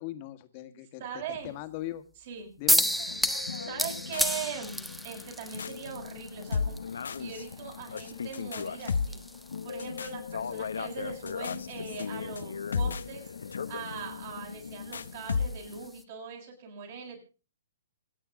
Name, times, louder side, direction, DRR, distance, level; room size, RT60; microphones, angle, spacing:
voice 1, 0.0-1.0 1.3-2.0 2.6-3.2 14.9-15.1, left 14 dB, 40° left, 10 dB, 1.8 m, -40 dB
voice 2, 1.0-1.5 2.3-2.5 3.3-9.2 9.6-17.2, right 6 dB, 55° right, -1 dB, 6.8 m, -41 dB
sound 1, 2.7-16.0, equal, ahead, 1.2 m, -35 dB
sound 2, 2.8-15.9, left 6 dB, 75° left, 1.0 m, -36 dB
26.5 x 8.8 x 3.8 m, 0.35 s
hypercardioid pair, 130°, 0 cm